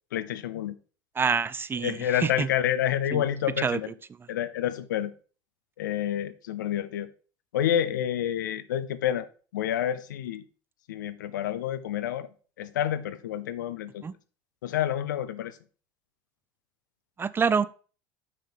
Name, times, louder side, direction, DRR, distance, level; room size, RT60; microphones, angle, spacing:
voice 1, 0.1-0.8 1.8-3.9 4.3-5.1 5.8-7.1 7.5-9.3 9.5-10.4 10.9-12.3 12.6-14.0 14.6-15.6, left 11 dB, 90° left, 0.5 m, -28 dB
voice 2, 1.2-2.5 3.1-3.2 3.6-3.8 14.0-14.1 17.2-17.7, right 5 dB, 25° right, 0.4 m, -26 dB
6.1 x 5.5 x 4.2 m
hypercardioid pair, 85°, 10 cm